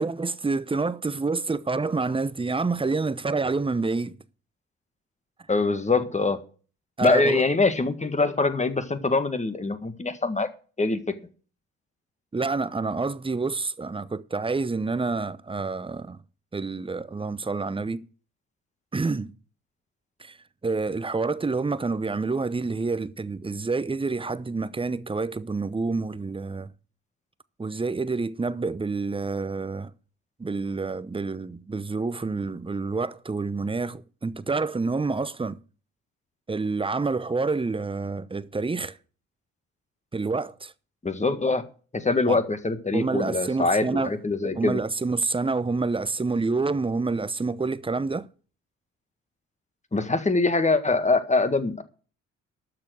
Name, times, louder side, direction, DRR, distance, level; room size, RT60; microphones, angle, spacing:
voice 1, 0.0-4.2 7.0-7.4 12.3-16.2 16.5-18.0 18.9-19.3 20.2-20.4 20.6-26.7 27.6-29.9 30.4-35.6 36.5-39.0 40.1-40.7 42.3-42.4 42.9-44.1 44.6-48.3, right 3 dB, 15° right, 0.8 m, -28 dB
voice 2, 5.5-6.4 7.0-10.5 10.8-11.0 41.0-41.6 41.9-44.8 49.9-51.8, left 3 dB, 20° left, 1.7 m, -23 dB
12.0 x 6.9 x 6.4 m
hypercardioid pair, 45°, 35 cm